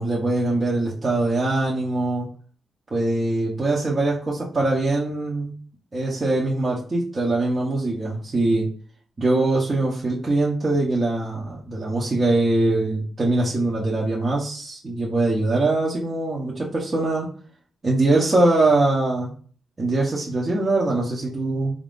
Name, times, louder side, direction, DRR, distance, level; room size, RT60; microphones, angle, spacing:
voice 1, 0.0-2.3 2.9-5.5 5.9-8.7 9.2-17.3 17.8-19.3 19.8-21.7, right 2 dB, 25° right, -5 dB, 0.8 m, -22 dB
4.4 x 2.5 x 3.6 m, 0.43 s
wide cardioid pair, 170°, 0 cm